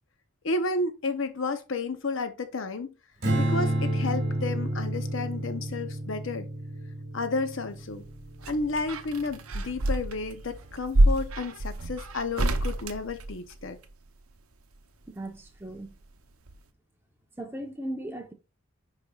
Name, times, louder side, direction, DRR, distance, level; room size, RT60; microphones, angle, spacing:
voice 1, 0.4-2.9 3.4-6.5 7.1-8.0 8.5-13.8, left 3 dB, 60° left, 0.7 m, -31 dB
Strum, 3.2-9.6, right 1 dB, 50° right, 2.4 m, -30 dB
sound 1, 7.9-13.9 15.3-16.2 16.5-16.6, right 1 dB, 80° right, 0.7 m, -28 dB
voice 2, 15.1-15.9 17.4-18.3, right 1 dB, 10° right, 0.9 m, -37 dB
10.5 x 4.3 x 2.4 m
head